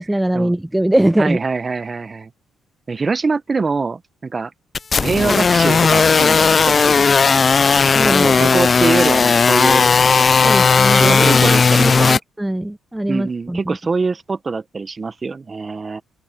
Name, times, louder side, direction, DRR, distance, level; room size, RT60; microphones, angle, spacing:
voice 1, 0.0-1.4 7.9-8.5 10.4-11.5 11.8-13.8, right 1 dB, 5° right, 0.7 m, -21 dB
voice 2, 1.2-2.3 2.9-4.5 4.9-7.3 8.0-9.9 10.4-12.2 13.1-16.0, right 4 dB, 30° right, 1.1 m, -23 dB
sound 1, 4.7-12.2, left 5 dB, 35° left, 0.5 m, -14 dB
open air
cardioid pair, 90°, 0 cm